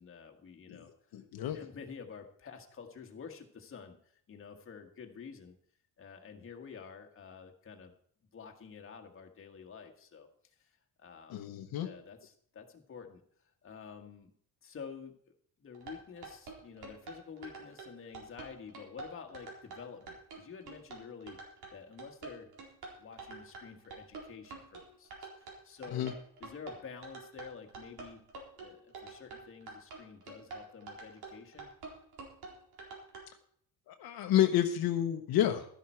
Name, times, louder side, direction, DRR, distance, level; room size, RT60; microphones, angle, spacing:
voice 1, 0.0-5.5 6.0-7.9 8.3-10.3 10.6-11.5 11.8-14.3 14.6-15.1 15.6-21.4 21.7-22.5 23.0-26.1 26.4-28.2 28.6-31.7, left 6 dB, 35° left, 3 dB, 1.6 m, -49 dB
voice 2, 1.1-1.6 11.3-11.9 25.9-26.1 33.9-35.7, left 11 dB, 70° left, 5 dB, 1.1 m, -29 dB
sound 1, 15.7-33.2, right 4 dB, 75° right, 4.1 m, -47 dB
12.5 x 11.0 x 4.5 m, 0.62 s
cardioid pair, 155°, 38 cm